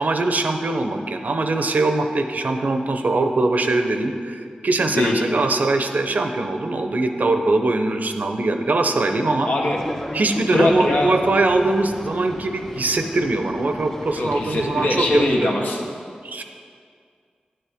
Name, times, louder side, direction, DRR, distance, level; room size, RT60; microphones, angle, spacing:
voice 1, 0.0-9.5 10.1-15.6 16.2-16.4, right 2 dB, 65° right, 6 dB, 0.6 m, -22 dB
voice 2, 4.9-5.2 9.4-9.8 10.5-11.2 14.2-15.8, left 2 dB, 70° left, 0 dB, 1.2 m, -22 dB
Boat Water vehicle, 9.6-15.3, equal, 20° left, 1.6 m, -36 dB
9.8 x 7.5 x 3.6 m, 2.2 s
wide cardioid pair, 70°, 3 cm